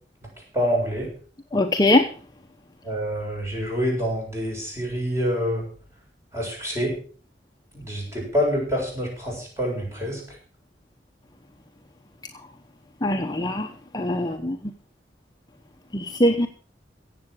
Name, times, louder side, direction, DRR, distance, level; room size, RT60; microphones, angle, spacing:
voice 1, 0.5-1.1 2.8-5.6 6.3-6.9 7.8-10.2 14.2-14.3, equal, 15° right, -2 dB, 7.4 m, -26 dB
voice 2, 1.5-2.1 13.0-13.7 13.9-14.6 15.9-16.5, left 1 dB, 20° left, 5 dB, 0.9 m, -21 dB
17.0 x 7.8 x 6.4 m, 0.42 s
head